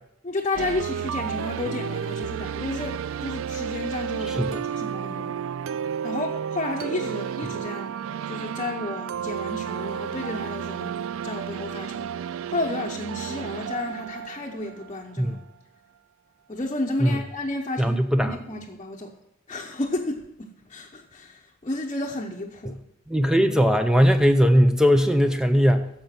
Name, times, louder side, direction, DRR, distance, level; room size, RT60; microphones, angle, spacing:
voice 1, 0.2-5.4 6.0-7.9 8.3-10.9 11.2-12.1 12.5-15.4 16.5-19.1 19.5-22.8, left 2 dB, 30° left, -1 dB, 0.8 m, -32 dB
sound 1, 0.5-15.4, right 8 dB, 80° right, 0.3 m, -32 dB
voice 2, 4.3-4.6 15.2-15.4 17.0-17.2 17.8-18.4 23.1-25.9, equal, 5° right, 7 dB, 0.5 m, -19 dB
10.5 x 6.9 x 5.8 m, 0.81 s
head